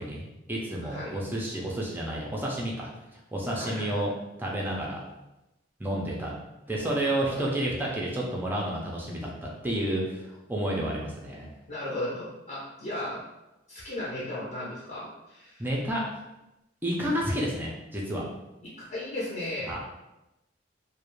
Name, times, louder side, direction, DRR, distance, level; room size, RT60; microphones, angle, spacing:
voice 1, 0.0-2.9 3.3-4.1 4.4-5.0 5.8-6.3 6.7-9.3 9.6-10.2 10.5-11.5 15.6-16.0 16.8-18.2 19.7-19.8, right 1 dB, 10° right, -3 dB, 0.4 m, -30 dB
voice 2, 0.8-1.2 3.5-4.0 6.0-6.3 7.2-7.4 11.7-13.2 13.7-15.7 18.6-19.8, left 1 dB, 40° left, -7 dB, 0.6 m, -36 dB
2.4 x 2.1 x 3.0 m, 0.95 s
head